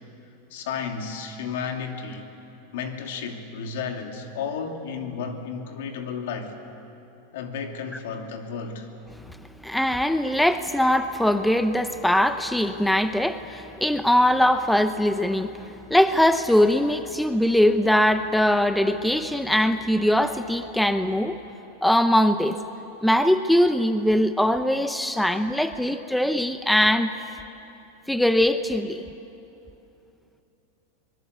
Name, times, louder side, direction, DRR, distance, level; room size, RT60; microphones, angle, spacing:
voice 1, 0.5-2.3 2.7-6.6 7.3-8.9, left 6 dB, 70° left, 4 dB, 2.7 m, -33 dB
voice 2, 9.6-21.4 21.8-22.6 23.0-27.1 28.1-29.0, left 1 dB, ahead, 9 dB, 0.7 m, -21 dB
24.0 x 21.0 x 8.2 m, 2.8 s
supercardioid pair, 140°, 0 cm